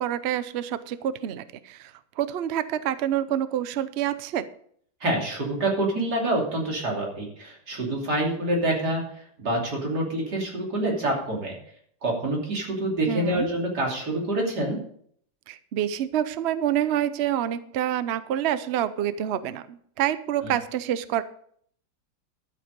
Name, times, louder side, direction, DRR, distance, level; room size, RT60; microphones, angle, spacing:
voice 1, 0.0-4.5 13.1-13.5 15.5-21.2, right 11 dB, 85° right, 14 dB, 0.5 m, -27 dB
voice 2, 5.0-9.0 9.4-11.6 12.0-14.8 20.4-20.5, right 1 dB, 60° right, -1 dB, 3.5 m, -26 dB
12.5 x 7.9 x 5.2 m, 0.63 s
omnidirectional pair, 2.0 m